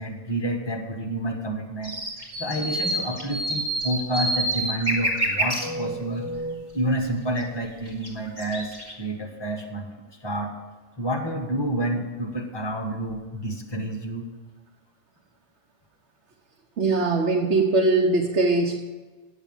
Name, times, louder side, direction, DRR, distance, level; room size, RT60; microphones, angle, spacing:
voice 1, 0.0-2.0 2.4-10.5 11.0-14.3, right 1 dB, 20° left, 2 dB, 1.5 m, -29 dB
sound 1, 1.8-5.6 7.4-7.5 7.8-8.9, right 1 dB, 30° right, 2.2 m, -27 dB
voice 2, 16.8-18.8, right 3 dB, 75° right, -1 dB, 1.3 m, -21 dB
9.4 x 7.2 x 7.2 m, 1.3 s
omnidirectional pair, 1.2 m